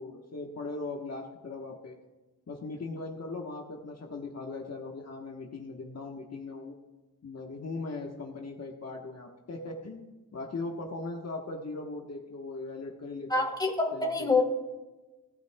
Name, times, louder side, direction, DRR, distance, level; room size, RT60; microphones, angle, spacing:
voice 1, 0.0-2.0 2.5-6.7 7.2-13.5 13.9-14.4, left 3 dB, 45° left, 0 dB, 1.2 m, -39 dB
voice 2, 13.3-14.4, left 3 dB, 10° left, 1 dB, 1.8 m, -26 dB
18.0 x 9.2 x 2.3 m, 1.1 s
wide cardioid pair, 125°, 36 cm